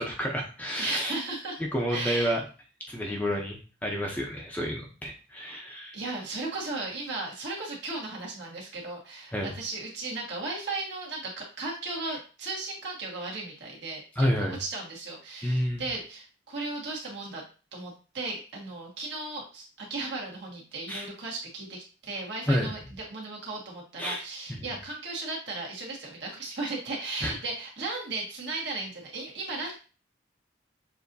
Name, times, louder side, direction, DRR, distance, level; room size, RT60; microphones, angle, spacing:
voice 1, 0.0-1.1 1.7-2.4 2.9-6.0 9.3-9.5 12.1-12.2 14.2-14.6 15.4-15.8 20.9-21.1 22.5-22.7 24.0-24.2 24.5-24.6 27.2-27.3, equal, 10° left, -1 dB, 0.7 m, -29 dB
voice 2, 0.8-1.6 1.9-2.4 5.9-17.4 17.7-29.7, right 2 dB, 60° right, -3 dB, 1.8 m, -36 dB
7.0 x 2.8 x 2.7 m, 0.35 s
head